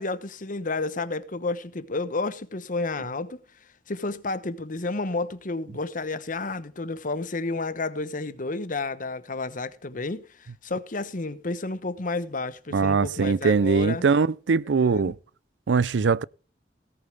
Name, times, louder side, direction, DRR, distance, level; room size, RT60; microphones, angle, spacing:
voice 1, 0.0-3.4 3.9-14.0 14.8-15.1, left 3 dB, 50° left, 1.1 m, -31 dB
voice 2, 12.7-15.1 15.7-16.2, right 5 dB, 90° right, 0.5 m, -21 dB
17.5 x 8.6 x 3.5 m
head